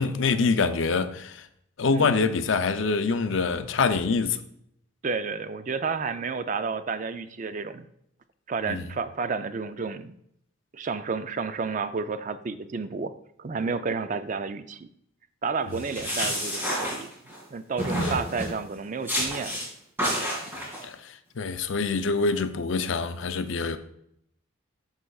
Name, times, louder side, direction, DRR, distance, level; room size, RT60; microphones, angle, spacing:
voice 1, 0.0-1.5 1.8-4.4 8.7-8.8 17.9-18.1 20.8-23.8, left 4 dB, 65° left, 0.5 m, -25 dB
voice 2, 5.0-7.9 8.5-10.1 10.7-13.1 13.4-14.9 15.4-17.1 17.5-19.5 20.4-20.5, right 4 dB, 40° right, 0.4 m, -31 dB
sound 1, 15.7-17.4 17.8-18.6 19.1-19.7 20.0-20.8, equal, 10° right, 2.2 m, -29 dB
11.5 x 5.6 x 2.4 m
head